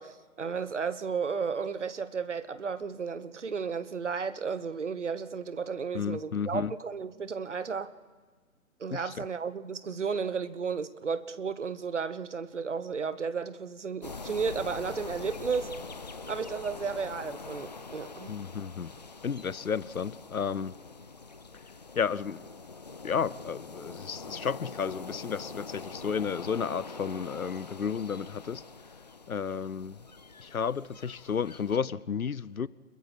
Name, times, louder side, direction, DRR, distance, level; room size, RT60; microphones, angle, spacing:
voice 1, 0.0-7.9 8.8-15.7 16.3-18.3, right 5 dB, 55° right, 1.1 m, -33 dB
voice 2, 5.9-6.7 8.9-9.3 18.3-18.9 19.2-20.8 22.0-22.5 23.0-28.6 29.3-30.0 30.4-32.7, left 6 dB, 75° left, 0.7 m, -32 dB
sound 1, 14.0-31.8, left 4 dB, 30° left, 0.7 m, -44 dB
28.5 x 22.0 x 4.3 m
figure-of-eight pair, 145°, 43 cm